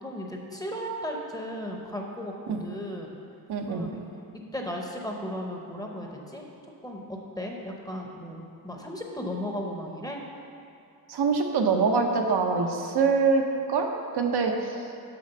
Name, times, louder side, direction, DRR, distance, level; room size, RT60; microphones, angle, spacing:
voice 1, 0.0-3.1 3.7-4.0 4.5-6.4 6.8-7.0 7.4-10.2, equal, 10° left, 0 dB, 0.7 m, -35 dB
voice 2, 3.5-3.9 11.1-13.4 13.7-14.9, right 4 dB, 80° right, 3 dB, 0.8 m, -24 dB
6.9 x 5.0 x 6.6 m, 2.5 s
wide cardioid pair, 140°, 39 cm